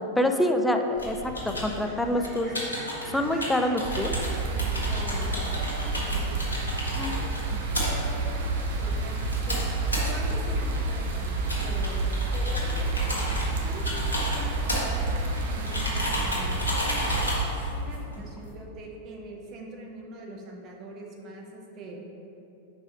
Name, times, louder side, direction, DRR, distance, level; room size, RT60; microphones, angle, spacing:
voice 1, 0.2-1.2 1.4-2.6 3.1-4.1 6.9-7.1 7.5-7.6, left 1 dB, 5° left, 5 dB, 0.4 m, -26 dB
sound 1, 1.0-18.5, left 1 dB, 75° left, 1.4 m, -34 dB
Fowl, 1.0-14.8, right 1 dB, 20° right, 1.4 m, -49 dB
sound 2, 3.8-17.4, right 3 dB, 60° right, 0.8 m, -29 dB
voice 2, 4.9-6.5 7.9-13.8 14.3-16.7 17.7-22.0, right 2 dB, 35° right, 0 dB, 1.0 m, -43 dB
5.0 x 4.8 x 5.1 m, 3.0 s
figure-of-eight pair, 90°, 0 cm